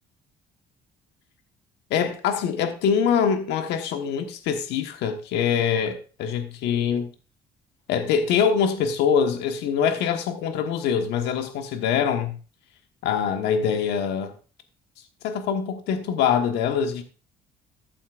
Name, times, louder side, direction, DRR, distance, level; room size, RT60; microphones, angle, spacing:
voice 1, 1.9-7.1 7.9-12.4 13.0-14.3 15.2-17.0, left 7 dB, 85° left, 1.3 m, -24 dB
14.0 x 8.4 x 2.5 m
cardioid pair, 110°, 17 cm